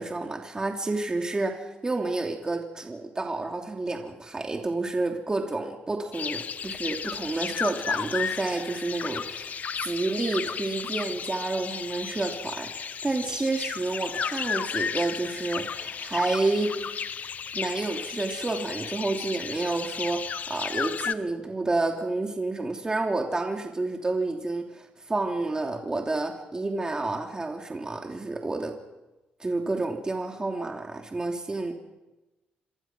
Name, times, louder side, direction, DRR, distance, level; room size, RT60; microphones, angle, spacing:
voice 1, 0.0-16.7 17.5-28.7 29.4-31.7, right 2 dB, 20° right, 2 dB, 3.0 m, -30 dB
sound 1, 6.1-21.1, left 6 dB, 50° left, 1.0 m, -33 dB
26.5 x 24.5 x 6.2 m, 1.1 s
cardioid pair, 100°, 3 cm